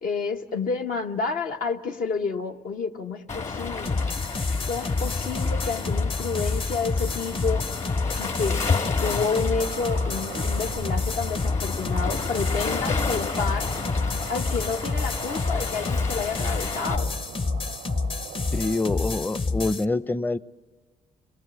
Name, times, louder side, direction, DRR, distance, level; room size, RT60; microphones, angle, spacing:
voice 1, 0.0-4.0 4.7-7.6 8.2-8.6 9.0-13.7 14.3-17.2, left 5 dB, 70° left, 4 dB, 1.1 m, -30 dB
Waves surf, 3.3-17.0, left 4 dB, 50° left, 2.1 m, -31 dB
sound 1, 3.9-19.9, left 3 dB, 35° left, 0.9 m, -29 dB
sound 2, 9.6-18.8, right 11 dB, 80° right, 0.6 m, -42 dB
voice 2, 18.5-20.4, left 2 dB, 10° left, 16 dB, 0.6 m, -26 dB
26.0 x 18.0 x 7.1 m, 1.4 s
supercardioid pair, 55°, 15 cm